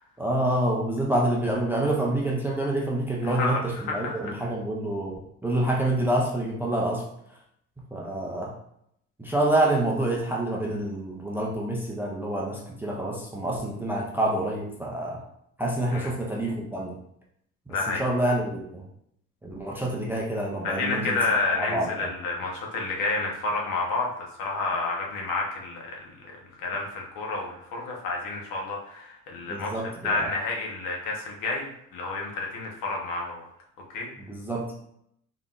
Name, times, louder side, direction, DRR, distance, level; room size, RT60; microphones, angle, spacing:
voice 1, 0.2-7.0 7.9-8.5 9.2-15.2 15.6-17.0 17.7-18.8 19.4-21.2 21.5-22.1 29.4-30.3 34.2-34.7, right 1 dB, 5° right, -2 dB, 0.3 m, -27 dB
voice 2, 3.2-4.3 15.9-16.1 17.7-18.0 20.6-29.7 30.0-33.5 33.9-34.1, left 3 dB, 75° left, -1 dB, 1.2 m, -30 dB
3.9 x 3.8 x 2.4 m, 0.73 s
cardioid pair, 170°, 33 cm